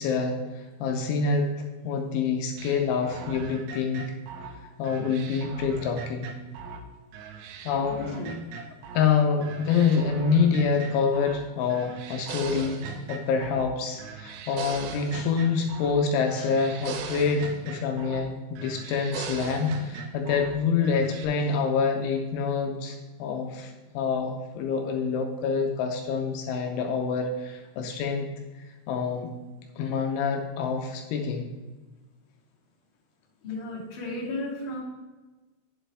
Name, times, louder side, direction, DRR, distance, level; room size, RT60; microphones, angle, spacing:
voice 1, 0.0-1.5 1.8-4.1 4.8-6.3 7.7-8.1 8.9-12.8 13.1-28.3 28.9-29.3 29.8-31.5, left 5 dB, 80° left, 3 dB, 3.2 m, -26 dB
sound 1, 2.6-6.8 7.1-9.1 9.4-11.4 11.7-13.7 14.0-16.0 16.3-18.3 18.6-20.5 20.8-21.2, right 6 dB, 90° right, 3.4 m, -40 dB
voice 2, 7.9-8.5 33.4-34.8, left 2 dB, 30° left, -6 dB, 2.7 m, -34 dB
10.0 x 7.7 x 3.4 m, 1.2 s
omnidirectional pair, 5.5 m